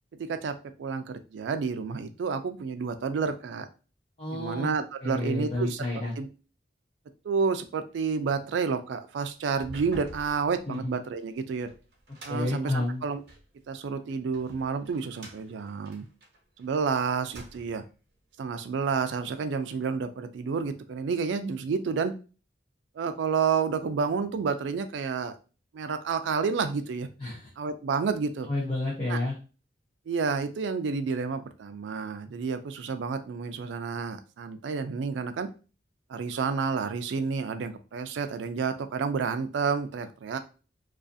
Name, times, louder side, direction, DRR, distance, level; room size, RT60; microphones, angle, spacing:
voice 1, 0.2-3.7 4.3-5.9 6.2-6.3 7.2-11.7 12.2-13.2 13.7-16.1 16.6-17.8 18.4-22.1 23.0-25.3 25.7-27.1 27.6-28.5 29.1-29.2 30.1-35.5 36.1-40.4, right 5 dB, 80° right, 9 dB, 0.3 m, -30 dB
voice 2, 4.2-4.7 5.0-6.1 10.7-10.9 12.3-13.0 27.2-27.5 28.5-29.4, left 2 dB, 30° left, -5 dB, 0.5 m, -30 dB
sound 1, 9.6-13.5 14.1-16.8 17.2-17.9, right 1 dB, 60° right, 0.8 m, -49 dB
2.4 x 2.4 x 2.5 m, 0.34 s
head